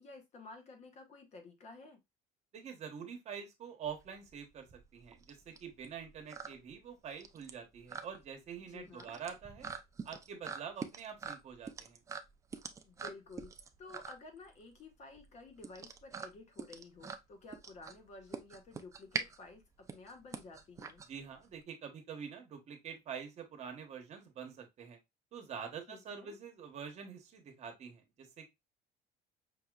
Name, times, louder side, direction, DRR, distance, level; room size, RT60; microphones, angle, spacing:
voice 1, 0.0-2.0 8.6-9.2 12.8-13.5 13.8-21.0 25.9-26.4, left 3 dB, 40° left, 1.2 m, -53 dB
voice 2, 2.5-4.7 4.9-9.7 10.0-12.0 21.1-25.0 25.3-28.5, right 7 dB, 40° right, 1.0 m, -46 dB
sound 1, 3.8-21.6, right 5 dB, 20° right, 0.4 m, -45 dB
5.5 x 2.8 x 2.3 m
cardioid pair, 155°, 17 cm